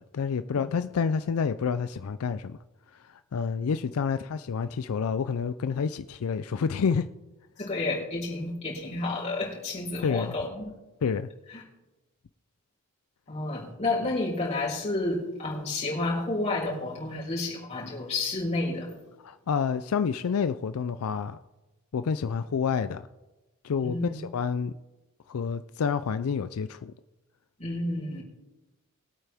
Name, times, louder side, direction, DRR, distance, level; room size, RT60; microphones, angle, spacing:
voice 1, 0.0-2.6 3.3-7.1 10.0-10.3 11.0-11.3 19.2-21.4 21.9-23.1 23.6-24.7 25.3-26.9, left 6 dB, 80° left, 12 dB, 0.4 m, -28 dB
voice 2, 7.6-10.7 11.5-11.6 13.3-18.9 23.7-24.1 27.6-28.2, left 2 dB, 30° left, -5 dB, 4.4 m, -30 dB
21.5 x 9.0 x 3.5 m, 1.1 s
head